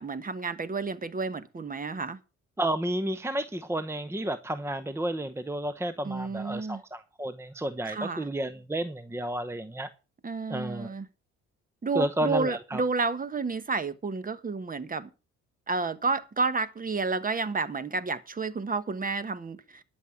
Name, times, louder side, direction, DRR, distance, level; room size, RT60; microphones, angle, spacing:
voice 1, 0.0-2.2 6.0-6.8 7.9-8.3 10.2-11.1 11.8-15.1 15.7-19.8, right 4 dB, 30° right, 1.3 m, -31 dB
voice 2, 2.6-9.9 10.5-10.9 11.9-12.8, right 1 dB, 10° right, 0.8 m, -31 dB
12.0 x 6.4 x 7.1 m
cardioid pair, 80°, 29 cm